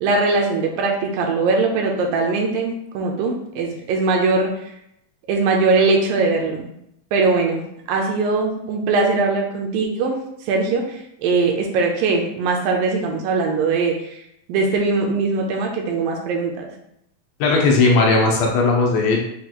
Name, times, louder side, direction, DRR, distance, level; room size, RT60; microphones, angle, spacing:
voice 1, 0.0-4.5 5.3-6.7 7.1-10.1 10.5-14.2 14.5-16.7, right 3 dB, 80° right, 1 dB, 2.2 m, -21 dB
voice 2, 17.4-19.2, left 3 dB, 85° left, 0 dB, 2.6 m, -17 dB
6.9 x 2.4 x 2.9 m, 0.77 s
omnidirectional pair, 4.1 m